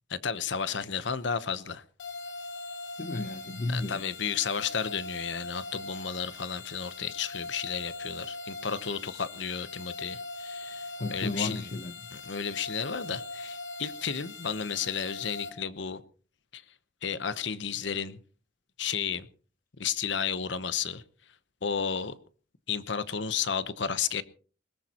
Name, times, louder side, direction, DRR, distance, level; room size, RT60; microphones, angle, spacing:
voice 1, 0.1-1.8 3.7-11.6 12.2-16.0 16.5-16.6 17.0-18.2 18.8-19.3 19.8-21.0 21.6-22.2 22.7-24.2, left 6 dB, 70° left, 0.9 m, -32 dB
sound 1, 2.0-15.5, left 3 dB, 85° left, 2.6 m, -41 dB
voice 2, 3.0-4.0 11.0-12.0, left 2 dB, 45° left, 0.7 m, -33 dB
21.0 x 18.5 x 3.0 m
head